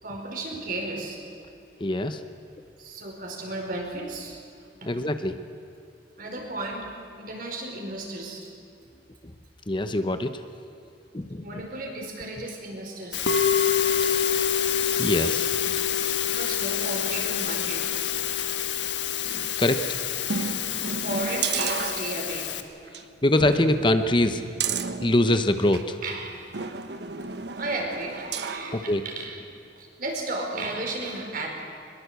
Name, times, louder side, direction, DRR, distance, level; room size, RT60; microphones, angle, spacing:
voice 1, 0.0-1.2 2.8-4.4 4.8-5.0 6.2-6.9 7.2-8.5 11.4-13.3 16.2-18.0 20.9-22.5 24.8-24.9 26.0-26.4 27.5-29.4 29.8-31.6, right 2 dB, 50° right, 1 dB, 4.9 m, -34 dB
voice 2, 1.8-2.2 4.9-5.4 9.7-10.4 11.1-11.6 15.0-15.9 19.3-19.8 23.2-24.4 25.0-26.0 28.7-29.0, left 1 dB, 25° left, 9 dB, 0.9 m, -24 dB
Musical instrument, 13.1-22.6, left 8 dB, 90° left, 1.5 m, -26 dB
sound 1, 20.3-22.5 22.9-23.0 23.4-25.9 26.5-28.7 29.2-29.3, right 5 dB, 70° right, 1.2 m, -33 dB
23.0 x 21.5 x 8.2 m, 2.6 s
head